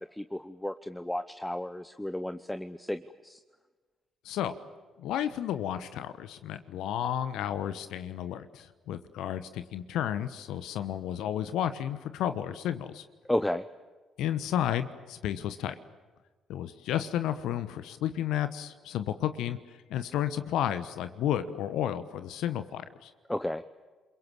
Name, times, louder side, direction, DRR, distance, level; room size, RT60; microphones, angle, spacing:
voice 1, 0.1-3.4 13.3-13.6 23.3-23.6, left 1 dB, 10° left, 11 dB, 0.9 m, -33 dB
voice 2, 4.2-4.6 5.0-13.0 14.2-15.7 16.5-23.1, left 10 dB, 65° left, 12 dB, 1.1 m, -32 dB
29.5 x 22.5 x 7.3 m, 1.3 s
hypercardioid pair, 45°, 0 cm